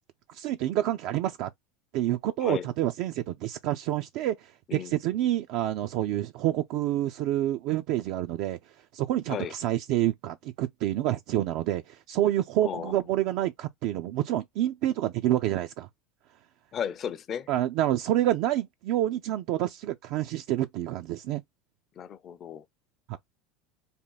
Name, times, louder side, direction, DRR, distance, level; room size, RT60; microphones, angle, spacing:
voice 1, 0.3-1.5 1.9-8.6 8.9-15.9 17.5-21.4 23.1-23.2, right 13 dB, 65° right, 0.4 m, -28 dB
voice 2, 12.6-13.0 16.7-17.5 22.0-22.6, left 8 dB, 40° left, 0.5 m, -34 dB
3.5 x 2.2 x 3.9 m
supercardioid pair, 115°, 0 cm